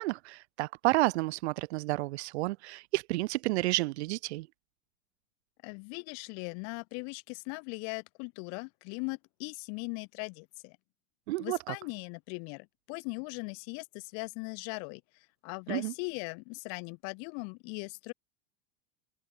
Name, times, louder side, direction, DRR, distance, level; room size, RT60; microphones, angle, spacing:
voice 1, 0.0-4.5 11.3-11.7 15.7-15.9, right 20 dB, 60° right, 2.3 m, -30 dB
voice 2, 5.6-10.8 11.4-15.0 15.4-18.1, left 38 dB, 45° left, 2.2 m, -39 dB
supercardioid pair, 160°, 36 cm